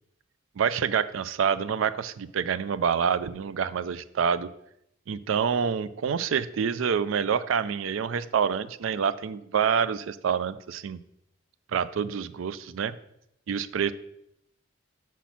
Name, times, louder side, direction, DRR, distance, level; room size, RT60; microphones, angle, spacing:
voice 1, 0.6-4.5 5.1-11.0 11.7-13.0 13.5-13.9, right 7 dB, 70° right, 15 dB, 0.4 m, -27 dB
6.0 x 4.3 x 5.6 m, 0.77 s
head